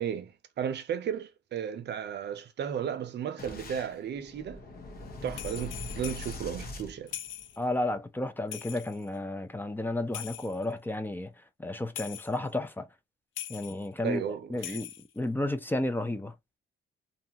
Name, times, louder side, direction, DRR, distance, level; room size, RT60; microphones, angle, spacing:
voice 1, 0.0-4.6 5.2-7.2 14.0-14.8, right 8 dB, 60° right, 0.6 m, -34 dB
Boom, 3.4-7.8, left 2 dB, 50° left, 0.9 m, -42 dB
sound 1, 5.3-6.4 7.1-7.6 8.5-9.1 10.1-10.7 12.0-12.4 13.4-13.9 14.5-15.2, left 10 dB, 75° left, 0.5 m, -41 dB
voice 2, 7.6-11.3 11.6-12.9 13.5-14.2 14.5-14.9 15.2-16.3, left 1 dB, 10° left, 0.5 m, -32 dB
2.7 x 2.3 x 2.8 m
cardioid pair, 90°, 20 cm